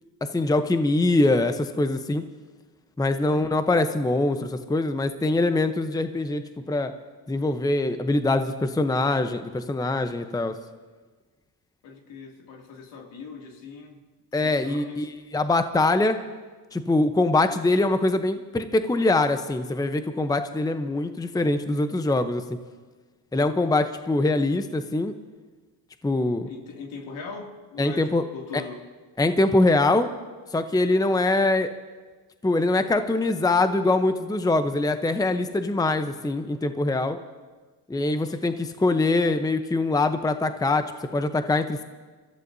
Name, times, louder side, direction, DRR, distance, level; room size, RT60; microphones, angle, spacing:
voice 1, 0.2-2.2 3.0-6.9 7.3-10.5 14.3-16.2 16.7-22.6 23.3-25.1 26.0-26.5 27.8-28.2 28.5-28.6 29.2-30.1 30.5-31.7 32.4-37.2 37.9-41.8, left 2 dB, 10° left, 9 dB, 0.8 m, -23 dB
voice 2, 3.1-3.6 11.8-14.1 14.4-15.1 26.5-28.8, left 4 dB, 70° left, 2 dB, 2.7 m, -41 dB
25.5 x 14.5 x 2.7 m, 1.4 s
supercardioid pair, 70°, 48 cm